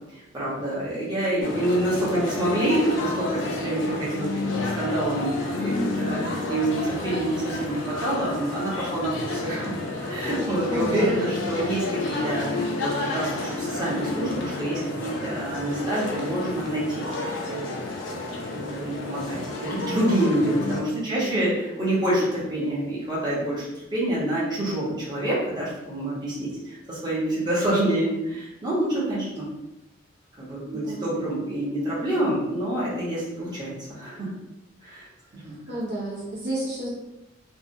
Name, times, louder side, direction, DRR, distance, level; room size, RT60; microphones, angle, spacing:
voice 1, 0.3-9.7 10.1-17.0 17.5-17.8 18.7-29.4 30.4-34.3 34.8-35.1 35.3-35.5, right 1 dB, 20° right, -8 dB, 0.8 m, -27 dB
sound 1, 1.4-20.8, left 2 dB, 75° left, 0.5 m, -30 dB
voice 2, 10.7-11.1 20.9-21.5 30.7-31.1 35.4-36.9, right 1 dB, 55° right, -6 dB, 0.6 m, -31 dB
2.7 x 2.0 x 2.6 m, 0.97 s
head